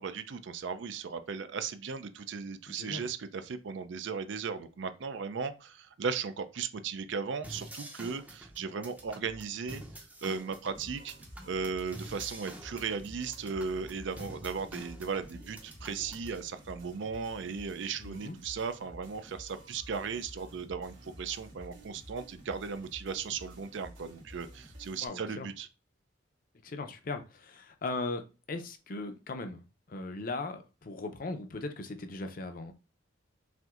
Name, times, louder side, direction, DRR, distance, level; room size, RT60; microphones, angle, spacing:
voice 1, 0.0-9.8 10.2-11.1 11.5-25.7, right 5 dB, 65° right, 0.4 m, -36 dB
voice 2, 2.7-3.1 18.0-18.4 25.0-25.5 26.6-28.2 28.5-29.6 29.9-32.7, left 3 dB, 45° left, 0.6 m, -38 dB
sound 1, 7.4-16.4, right 1 dB, 10° right, 0.5 m, -48 dB
sound 2, 10.7-25.1, equal, 90° right, 2.3 m, -51 dB
5.9 x 2.6 x 2.4 m
head